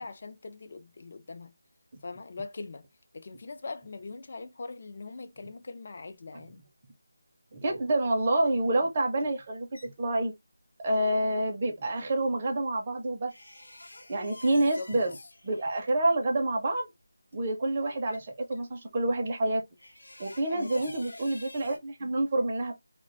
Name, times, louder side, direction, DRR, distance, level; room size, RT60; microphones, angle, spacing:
voice 1, 0.0-1.5 2.0-2.9 3.1-6.6 14.5-14.9 17.9-18.0 20.5-20.9 22.0-22.1, left 3 dB, 45° left, 0.3 m, -41 dB
voice 2, 7.5-10.3 10.8-13.3 14.1-15.1 15.4-16.9 17.3-19.6 20.2-22.7, right 2 dB, 30° right, 0.5 m, -28 dB
sound 1, 9.2-9.9 13.3-15.9 17.0-17.1 17.3-17.4 17.8-18.2 19.8-21.8, left 1 dB, 85° left, 0.8 m, -49 dB
2.2 x 2.1 x 2.5 m
figure-of-eight pair, 170°, 0 cm